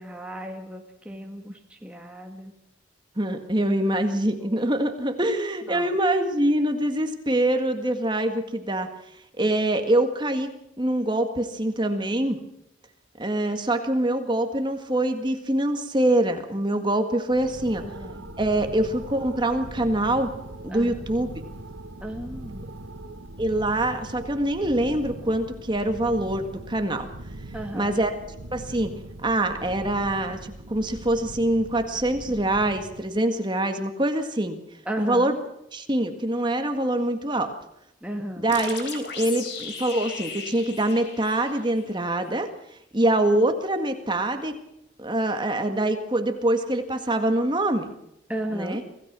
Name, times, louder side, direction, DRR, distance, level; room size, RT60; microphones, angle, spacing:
voice 1, 0.0-2.5 4.4-4.6 5.7-5.9 17.8-18.3 20.7-21.0 22.0-22.7 27.5-28.0 34.8-35.3 38.0-38.5 48.3-48.8, right 1 dB, 5° right, 2 dB, 1.6 m, -35 dB
voice 2, 3.2-8.9 9.4-10.5 10.8-12.4 13.2-17.8 18.4-20.3 20.6-21.3 23.0-23.1 23.4-27.1 27.7-28.1 28.5-28.9 29.2-34.6 35.0-35.3 35.7-37.5 38.4-42.5 42.9-44.5 45.0-47.9 48.5-48.8, right 1 dB, 25° right, 6 dB, 1.8 m, -24 dB
sound 1, 17.3-33.3, right 1 dB, 85° right, 1.5 m, -41 dB
sound 2, 38.5-42.0, left 5 dB, 60° left, 3.7 m, -37 dB
25.5 x 17.0 x 6.2 m, 0.82 s
head